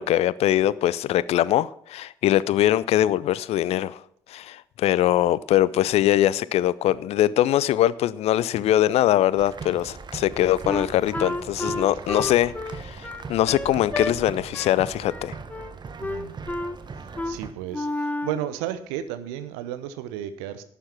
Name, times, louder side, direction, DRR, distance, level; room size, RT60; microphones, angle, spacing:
voice 1, 0.0-4.0 4.3-15.4, left 13 dB, 55° left, 0.5 m, -22 dB
sound 1, 9.4-17.5, right 4 dB, 35° right, 1.2 m, -39 dB
Wind instrument woodwind instrument, 10.7-14.1 14.5-14.8 15.1-15.7 16.0-16.8 17.2-17.4 17.7-18.4, left 2 dB, 10° left, 0.7 m, -31 dB
voice 2, 16.0-16.4 17.0-20.6, right 11 dB, 70° right, 0.8 m, -33 dB
11.5 x 9.0 x 5.9 m
figure-of-eight pair, 40°, 13 cm